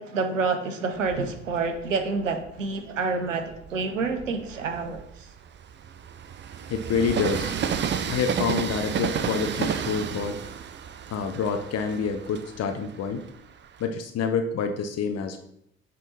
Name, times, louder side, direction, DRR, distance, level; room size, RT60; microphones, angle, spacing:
voice 1, 0.0-5.3, right 4 dB, 85° right, 6 dB, 0.8 m, -28 dB
Train, 1.0-2.7 3.3-13.9, right 7 dB, 30° right, 0.5 m, -32 dB
voice 2, 6.7-7.5 8.1-10.4 11.1-13.2 13.8-15.4, left 5 dB, 45° left, 6 dB, 0.7 m, -27 dB
7.5 x 3.8 x 4.1 m, 0.76 s
figure-of-eight pair, 60°, 37 cm